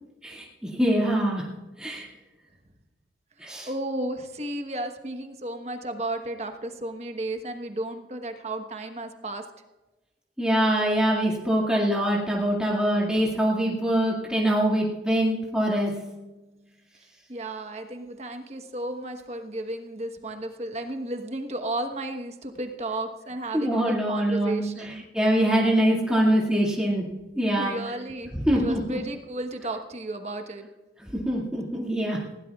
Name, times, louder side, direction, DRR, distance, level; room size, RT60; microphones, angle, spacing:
voice 1, 0.2-1.5 1.8-2.0 3.4-3.7 10.4-16.1 23.5-27.8 28.3-29.0 31.1-32.3, right 1 dB, 5° right, -5 dB, 2.2 m, -24 dB
voice 2, 3.7-9.4 17.3-25.0 27.6-30.7, right 1 dB, 35° right, 5 dB, 1.2 m, -33 dB
20.5 x 16.5 x 2.4 m, 1.1 s
head